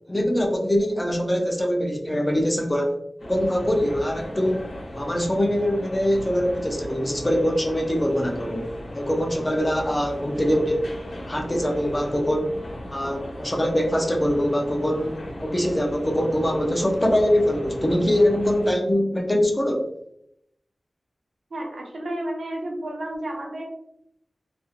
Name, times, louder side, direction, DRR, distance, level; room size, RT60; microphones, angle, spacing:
voice 1, 0.1-3.0 3.2-4.7 4.9-8.7 8.9-10.9 11.3-12.5 12.9-19.9, equal, 20° left, 1 dB, 0.5 m, -23 dB
voice 2, 2.2-2.5 21.5-23.6, right 1 dB, 90° right, 0 dB, 0.7 m, -32 dB
sound 1, 3.2-18.7, equal, 80° left, 0.9 m, -37 dB
2.9 x 2.5 x 2.3 m, 0.75 s
wide cardioid pair, 95°, 0 cm